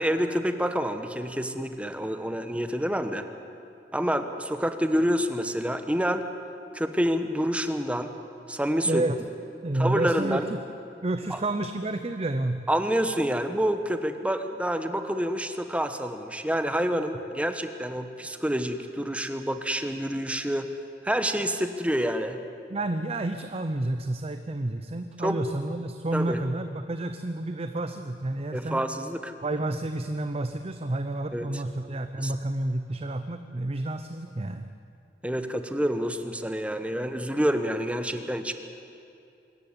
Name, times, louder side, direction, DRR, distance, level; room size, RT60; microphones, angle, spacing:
voice 1, 0.0-3.2 3.9-6.3 6.7-8.1 8.5-9.0 9.7-10.5 11.3-11.4 12.7-20.7 21.0-22.4 25.2-25.4 26.1-26.4 28.5-29.3 31.3-31.5 32.2-32.3 35.2-38.5, equal, 10° right, 8 dB, 1.1 m, -27 dB
voice 2, 8.8-9.2 9.6-10.6 11.0-12.6 22.7-28.8 29.4-34.7, right 2 dB, 35° right, 9 dB, 0.7 m, -30 dB
24.5 x 14.0 x 9.8 m, 2.6 s
head